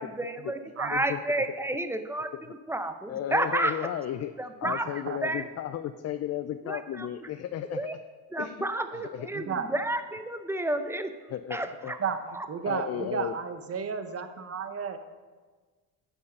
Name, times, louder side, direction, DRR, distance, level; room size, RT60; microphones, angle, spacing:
voice 1, 0.0-3.8 4.4-4.9 5.2-5.4 6.6-7.1 7.7-8.0 8.3-11.1 11.5-12.0 12.4-12.5, right 1 dB, 5° right, 8 dB, 0.6 m, -31 dB
voice 2, 3.1-4.3 4.6-7.8 8.4-8.7 8.9-9.3 11.3-12.0 12.7-13.3, left 11 dB, 40° left, 11 dB, 0.4 m, -34 dB
voice 3, 4.6-5.2 9.3-9.7 12.0-12.2 12.5-15.0, right 6 dB, 35° right, 9 dB, 0.9 m, -33 dB
8.5 x 4.6 x 6.5 m, 1.4 s
supercardioid pair, 80°, 40 cm